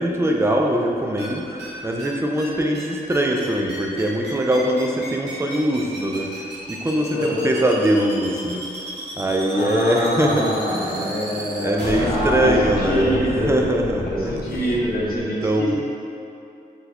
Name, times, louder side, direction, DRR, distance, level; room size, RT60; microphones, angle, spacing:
voice 1, 0.0-8.7 9.2-11.1 11.6-14.3 15.1-15.8, right 1 dB, 15° right, 0 dB, 0.4 m, -22 dB
sound 1, 1.2-1.3 1.6-1.7 2.0-2.1 2.4-2.5 2.7-2.8 3.1-15.2, right 1 dB, 90° right, 0.7 m, -32 dB
voice 2, 7.1-7.5 9.5-13.6 14.0-15.8, left 1 dB, 60° left, -6 dB, 0.9 m, -24 dB
3.9 x 2.4 x 2.8 m, 2.7 s
cardioid pair, 50°, 17 cm